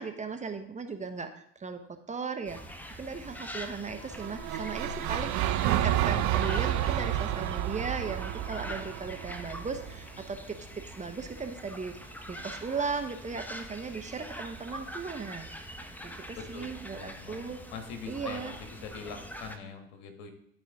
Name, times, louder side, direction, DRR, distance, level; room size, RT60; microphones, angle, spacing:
voice 1, 0.0-1.8 2.1-2.6 3.0-15.5 16.0-17.6 18.1-18.5, right 5 dB, 20° right, 7 dB, 0.9 m, -37 dB
sound 1, 2.5-19.6, equal, 5° left, 0.9 m, -44 dB
sound 2, 4.1-10.3, right 12 dB, 55° right, 0.7 m, -30 dB
voice 2, 16.4-20.3, left 6 dB, 70° left, 6 dB, 1.5 m, -43 dB
12.0 x 4.4 x 3.6 m, 0.73 s
hypercardioid pair, 75°, 35 cm